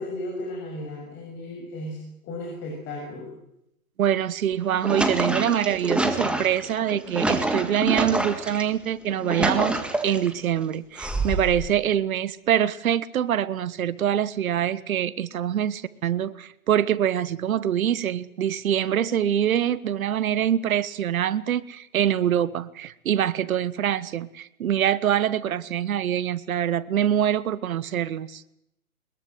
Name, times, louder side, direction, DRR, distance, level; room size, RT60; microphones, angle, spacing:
voice 1, 0.0-3.3, left 1 dB, 25° left, -1 dB, 6.8 m, -35 dB
voice 2, 4.0-28.4, right 10 dB, 75° right, 16 dB, 1.4 m, -25 dB
sound 1, 4.5-8.6 9.1-10.3 11.0-11.7, right 2 dB, ahead, 1.7 m, -26 dB
22.5 x 21.5 x 8.0 m, 0.82 s
hypercardioid pair, 145°, 42 cm